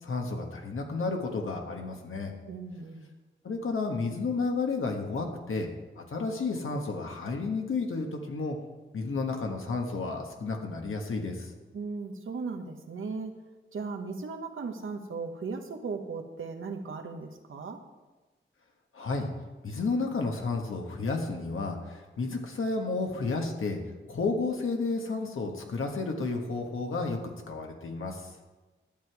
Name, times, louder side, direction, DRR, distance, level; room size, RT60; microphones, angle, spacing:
voice 1, 0.0-2.3 3.4-5.7 6.0-8.6 8.9-11.5 18.9-19.3 19.6-23.8 24.1-27.2 27.5-28.3, left 3 dB, 80° left, 2 dB, 1.4 m, -31 dB
voice 2, 2.5-3.1 11.7-13.4 13.7-17.8, right 4 dB, 80° right, 5 dB, 1.0 m, -37 dB
11.0 x 7.9 x 4.7 m, 1.2 s
wide cardioid pair, 75°, 21 cm